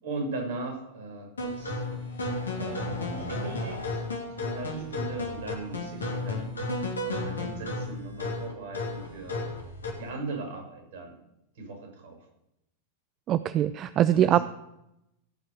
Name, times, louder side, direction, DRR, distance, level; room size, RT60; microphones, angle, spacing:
voice 1, 0.0-1.8 2.6-4.0 4.3-6.5 7.0-9.4 10.0-11.2 11.5-12.2 14.1-14.4, right 3 dB, 60° right, 2 dB, 6.0 m, -38 dB
sound 1, 1.4-10.1, left 2 dB, 70° left, 2.4 m, -33 dB
voice 2, 13.3-14.4, right 11 dB, 30° right, 14 dB, 0.4 m, -22 dB
17.0 x 5.6 x 6.6 m, 0.85 s
figure-of-eight pair, 90°, 0 cm